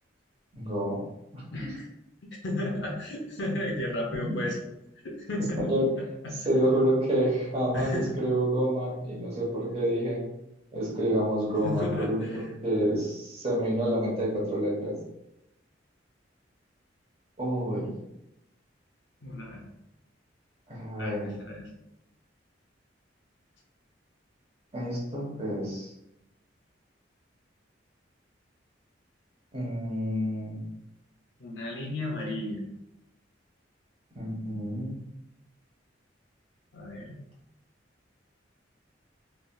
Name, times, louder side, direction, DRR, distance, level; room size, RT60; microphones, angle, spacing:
voice 1, 0.5-1.0 1.3-1.7 4.3-4.4 5.6-5.9 6.4-10.2 10.7-15.0 17.4-17.9 20.7-21.3 24.7-25.9 29.5-30.6 34.1-35.0, right 1 dB, 30° right, -5 dB, 1.1 m, -28 dB
voice 2, 1.5-1.9 2.4-4.6 5.0-5.8 6.2-6.4 7.7-8.1 11.6-12.1 19.2-19.7 21.0-21.7 31.4-32.6 36.7-37.1, left 1 dB, 65° left, -2 dB, 0.6 m, -33 dB
3.2 x 2.7 x 2.3 m, 0.85 s
head